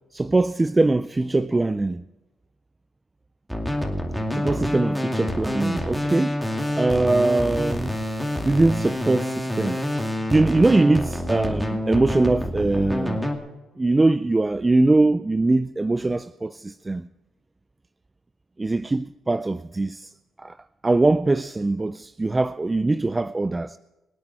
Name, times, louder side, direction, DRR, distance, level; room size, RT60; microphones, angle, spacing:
voice 1, 0.1-2.0 4.3-6.5 6.8-8.0 8.4-9.8 10.3-13.2 13.8-17.1 18.6-20.1 20.4-20.6 20.8-23.8, right 2 dB, 20° right, 0.4 m, -22 dB
sound 1, 3.5-13.4, left 1 dB, ahead, 2.5 m, -27 dB
25.0 x 8.8 x 4.8 m
cardioid pair, 90°, 0 cm